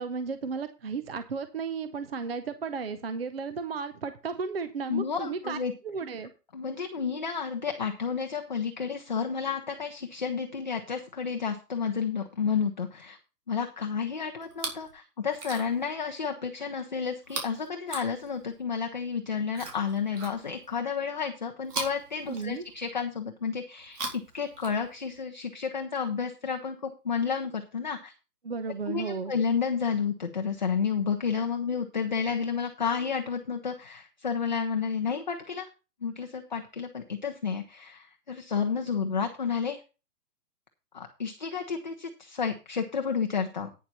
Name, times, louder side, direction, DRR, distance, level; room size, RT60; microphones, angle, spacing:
voice 1, 0.0-5.6 5.8-6.3 22.3-22.6 28.4-29.3, right 5 dB, 40° right, 11 dB, 0.7 m, -34 dB
voice 2, 4.9-5.7 6.5-13.2 13.5-28.1 28.9-35.7 36.0-39.8 40.9-43.7, left 6 dB, 30° left, 4 dB, 0.6 m, -31 dB
Chewing mastication, 14.4-14.9 15.3-15.9 17.2-18.6 19.5-20.8 21.6-22.9 23.8-25.2 26.1-26.2, right 3 dB, 75° right, 4.1 m, -40 dB
9.4 x 7.1 x 5.3 m, 0.31 s
hypercardioid pair, 175°, 47 cm